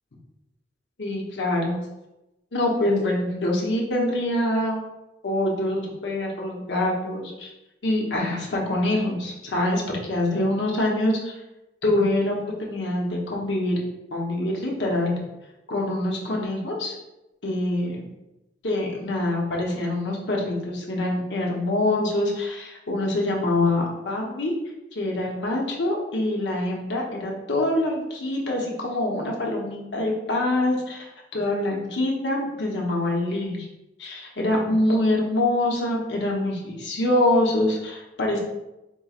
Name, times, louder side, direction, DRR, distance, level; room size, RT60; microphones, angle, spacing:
voice 1, 1.0-1.8 2.5-4.8 5.2-7.5 7.8-11.4 11.8-13.8 14.1-15.2 15.7-16.9 17.4-18.0 18.6-24.5 24.9-31.1 31.3-33.7 34.0-38.4, left 1 dB, 75° left, -1 dB, 0.9 m, -25 dB
4.5 x 3.1 x 2.4 m, 0.96 s
head